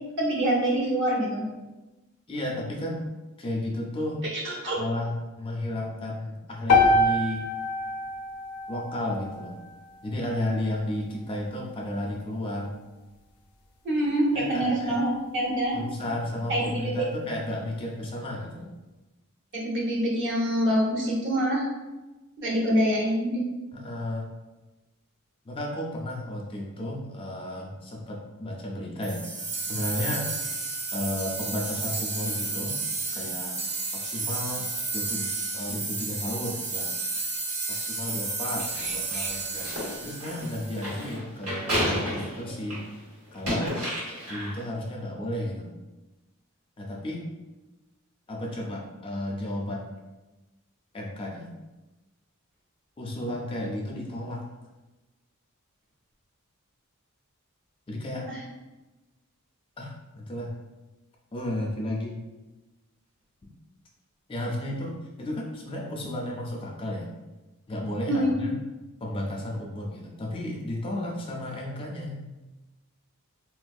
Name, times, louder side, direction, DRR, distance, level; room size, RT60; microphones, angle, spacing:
voice 1, 0.2-1.5 4.3-4.7 13.8-15.8 16.5-17.1 19.5-21.6 22.4-23.5 58.3-58.4 68.1-68.4, right 1 dB, 55° right, -3 dB, 0.8 m, -25 dB
voice 2, 2.3-3.0 3.4-4.2 4.8-7.5 8.7-9.6 10.0-12.7 14.3-15.0 15.7-18.7 23.7-24.3 25.5-29.4 29.7-30.3 30.9-32.8 33.1-36.9 37.7-39.7 40.0-42.8 43.3-43.8 44.3-45.7 46.8-47.2 48.3-49.9 50.9-51.5 53.0-54.4 57.9-58.3 59.8-60.5 61.3-62.2 64.3-67.1 67.7-68.6 69.0-72.2, left 1 dB, 25° left, -1 dB, 0.3 m, -33 dB
sound 1, 6.7-10.9, left 2 dB, 85° left, 0.5 m, -26 dB
sound 2, 29.0-41.0, right 3 dB, 30° right, 0.5 m, -32 dB
sound 3, 38.6-42.9 43.3-44.6, equal, 80° right, 1.5 m, -32 dB
3.6 x 2.5 x 2.3 m, 1.1 s
head